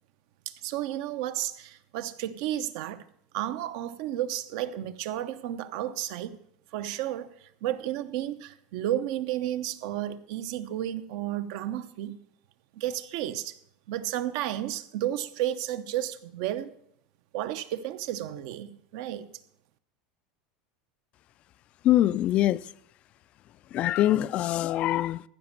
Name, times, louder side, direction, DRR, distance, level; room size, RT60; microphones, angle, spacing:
voice 1, 0.5-3.0 3.3-6.4 6.7-12.2 12.7-13.6 13.9-16.7 17.3-19.3, right 12 dB, 60° right, 0.8 m, -32 dB
voice 2, 21.8-22.6 23.7-25.2, left 13 dB, 35° left, 0.4 m, -23 dB
15.0 x 5.2 x 7.4 m
supercardioid pair, 155°, 4 cm